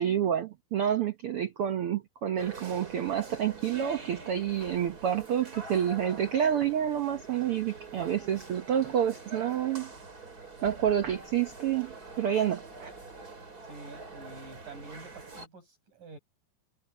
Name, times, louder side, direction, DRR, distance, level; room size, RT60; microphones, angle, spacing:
voice 1, 0.0-9.9 10.6-12.9, right 9 dB, 90° right, 1.2 m, -29 dB
sound 1, 2.4-15.5, right 3 dB, 25° right, 4.3 m, -45 dB
voice 2, 13.6-16.2, right 3 dB, 65° right, 8.0 m, -48 dB
omnidirectional pair, 4.0 m